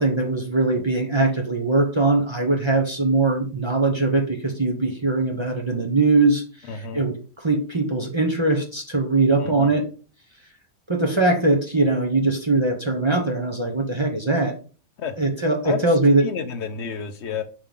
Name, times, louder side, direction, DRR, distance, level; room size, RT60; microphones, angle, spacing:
voice 1, 0.0-9.8 10.9-14.5 15.2-16.3, right 2 dB, 35° right, 2 dB, 0.4 m, -21 dB
voice 2, 6.7-7.0 9.4-9.7 15.0-15.2 15.6-15.8 16.2-17.4, left 6 dB, 65° left, 8 dB, 0.7 m, -30 dB
5.5 x 3.5 x 5.2 m, 0.37 s
omnidirectional pair, 1.9 m